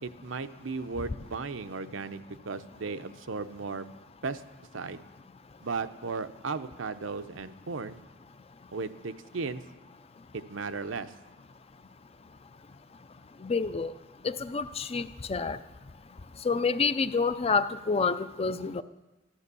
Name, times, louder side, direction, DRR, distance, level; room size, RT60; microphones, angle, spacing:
voice 1, 0.0-3.9 4.2-4.4 4.7-5.0 5.6-8.0 8.7-9.6 10.3-11.1, right 4 dB, 80° right, 10 dB, 0.7 m, -36 dB
voice 2, 13.4-13.9 14.2-15.0 15.3-15.6 16.5-18.8, left 4 dB, 30° left, 13 dB, 0.4 m, -28 dB
13.0 x 12.5 x 6.8 m, 1.1 s
head